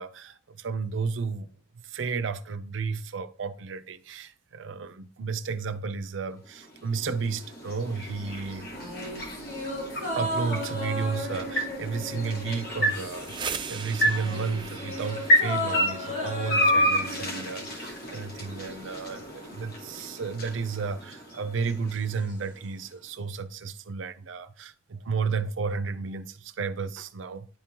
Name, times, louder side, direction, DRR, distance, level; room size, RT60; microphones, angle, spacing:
voice 1, 0.0-1.5 1.8-8.7 10.2-27.5, right 5 dB, 80° right, 0.5 m, -32 dB
sound 1, 6.4-22.6, equal, 55° left, 1.3 m, -31 dB
sound 2, 8.7-13.5 13.8-18.1 18.4-18.5, left 1 dB, 70° left, 3.5 m, -35 dB
sound 3, 13.0-22.7, right 6 dB, 25° right, 0.4 m, -43 dB
10.0 x 3.7 x 2.9 m
head